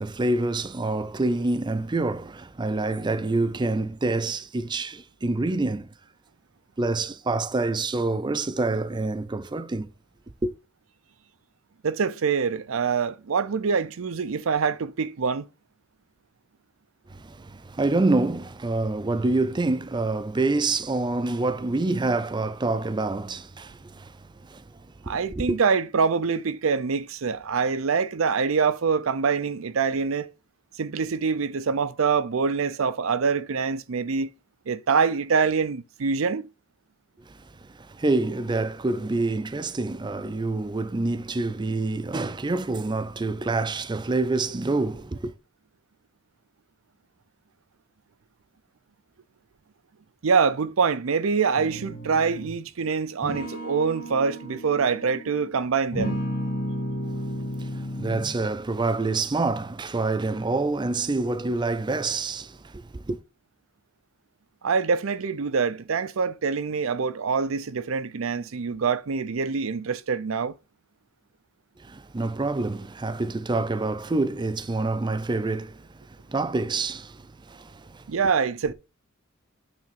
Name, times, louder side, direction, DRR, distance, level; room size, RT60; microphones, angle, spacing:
voice 1, 0.0-5.9 6.8-9.9 10.4-10.5 17.1-25.6 37.3-45.3 57.2-63.2 71.8-78.0, right 2 dB, 20° right, 0.4 m, -27 dB
voice 2, 11.8-15.4 25.1-30.3 30.8-34.3 34.7-36.5 50.2-56.2 64.6-70.5 78.1-78.7, right 5 dB, 75° right, 0.5 m, -25 dB
sound 1, 51.6-52.6 53.2-55.5 55.9-58.5, equal, 45° left, 1.8 m, -33 dB
8.9 x 3.5 x 5.8 m
head